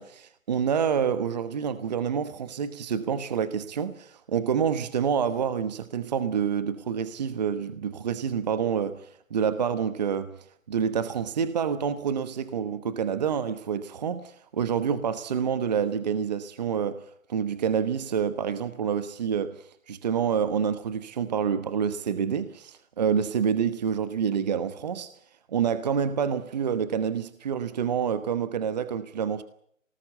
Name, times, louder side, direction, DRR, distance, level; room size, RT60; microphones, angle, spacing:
voice 1, 0.0-25.1 25.5-29.4, right 7 dB, 30° right, 1.1 m, -28 dB
25.5 x 19.0 x 8.2 m
hypercardioid pair, 160°, 40 cm